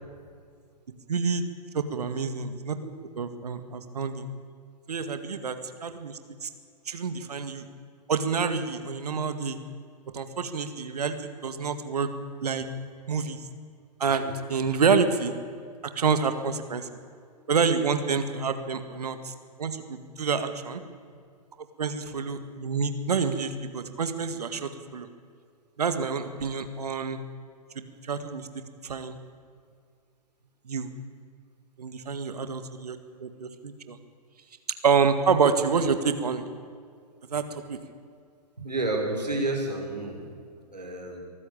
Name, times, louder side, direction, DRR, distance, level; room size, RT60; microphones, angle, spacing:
voice 1, 1.1-1.4 1.7-4.3 4.9-6.5 6.9-7.7 8.1-9.6 10.1-12.1 12.4-12.7 13.1-13.4 14.0-15.3 15.9-16.9 17.5-19.3 19.6-20.8 21.8-25.1 25.8-27.2 27.8-28.5 28.8-29.2 30.7-30.9 31.8-34.0 34.8-36.5 37.3-37.8, right 5 dB, 70° right, 9 dB, 2.0 m, -28 dB
voice 2, 38.6-40.2 40.7-41.2, right 2 dB, 90° right, 1 dB, 5.7 m, -29 dB
23.5 x 14.5 x 8.8 m, 2.2 s
figure-of-eight pair, 115°, 21 cm